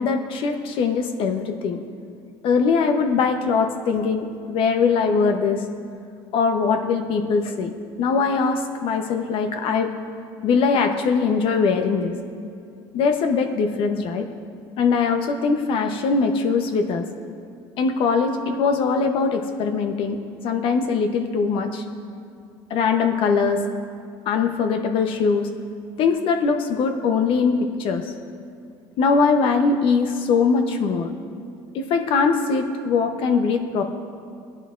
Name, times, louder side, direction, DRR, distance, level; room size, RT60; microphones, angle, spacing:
voice 1, 0.0-1.8 2.4-5.6 6.3-9.9 10.4-12.1 12.9-14.3 14.8-17.1 17.8-20.2 20.4-21.8 22.7-23.6 24.3-25.5 26.0-28.1 29.0-31.1 31.7-33.8, left 5 dB, 60° left, 5 dB, 0.9 m, -21 dB
19.5 x 11.0 x 2.5 m, 2.4 s
supercardioid pair, 100°, 10 cm